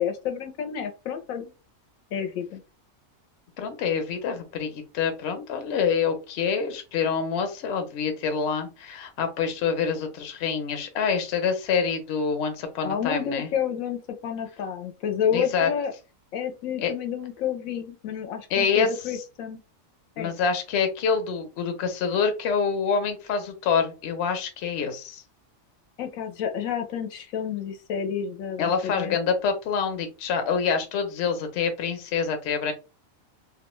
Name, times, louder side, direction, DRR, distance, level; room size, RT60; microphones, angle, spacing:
voice 1, 0.0-1.5 2.1-2.6 12.8-15.9 16.3-19.6 20.2-20.4 26.0-29.2, left 8 dB, 85° left, 5 dB, 1.0 m, -30 dB
voice 2, 3.6-13.5 15.3-15.7 16.8-16.9 18.5-19.2 20.2-25.2 28.6-32.7, left 6 dB, 60° left, 7 dB, 0.8 m, -26 dB
2.6 x 2.1 x 3.0 m, 0.31 s
omnidirectional pair, 1.4 m